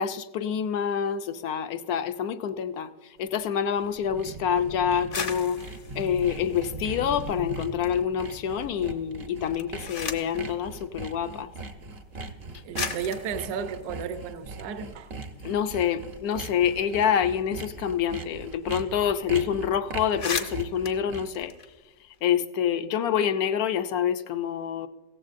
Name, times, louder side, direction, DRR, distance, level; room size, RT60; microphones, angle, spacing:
voice 1, 0.0-2.9 3.2-5.6 6.0-11.5 15.4-21.5 22.2-24.9, left 8 dB, 65° left, 1.0 m, -27 dB
Thunder / Rain, 3.2-15.6, right 2 dB, 90° right, 2.1 m, -43 dB
Sawing, 3.6-21.4, right 3 dB, 45° right, 0.8 m, -41 dB
sound 1, 4.9-7.5 7.9-8.6 9.4-10.4 11.5-11.6 12.3-12.4 12.7-15.0 15.4-15.5 15.8-18.4 18.6-18.8 19.1-19.3 19.7-19.8 20.0-22.2, left 4 dB, 45° left, 0.7 m, -38 dB
voice 2, 12.6-15.1, right 7 dB, 65° right, 1.3 m, -33 dB
16.5 x 15.0 x 2.5 m
omnidirectional pair, 1.9 m